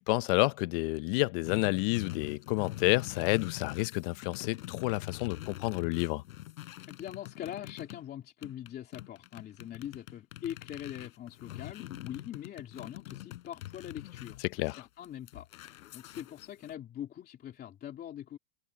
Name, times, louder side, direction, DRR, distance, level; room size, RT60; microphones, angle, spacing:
voice 1, 0.0-6.2 14.4-14.8, left 23 dB, 40° left, 0.7 m, -29 dB
sound 1, 1.4-8.0 8.4-16.7, left 15 dB, 80° left, 4.5 m, -44 dB
voice 2, 6.9-18.4, left 11 dB, 25° left, 2.8 m, -43 dB
supercardioid pair, 155°, 40 cm